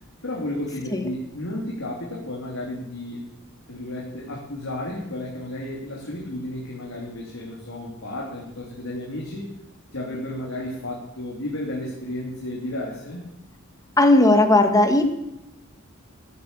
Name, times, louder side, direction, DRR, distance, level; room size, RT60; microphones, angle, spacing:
voice 1, 0.2-3.2 3.7-9.5 9.9-13.3, left 1 dB, 75° left, -3 dB, 3.1 m, -32 dB
voice 2, 14.0-15.0, left 2 dB, 15° left, 6 dB, 1.6 m, -16 dB
14.5 x 9.6 x 7.5 m, 0.90 s
head